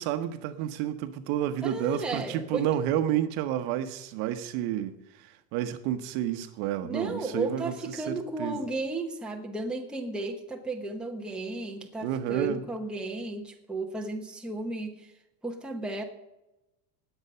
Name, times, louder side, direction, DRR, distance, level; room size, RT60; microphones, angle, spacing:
voice 1, 0.0-8.6 12.0-12.6, right 11 dB, 55° right, 1.1 m, -30 dB
voice 2, 1.6-2.7 6.8-15.1 15.4-16.0, right 2 dB, ahead, 1.0 m, -34 dB
19.0 x 8.0 x 5.6 m
cardioid pair, 165°, 44 cm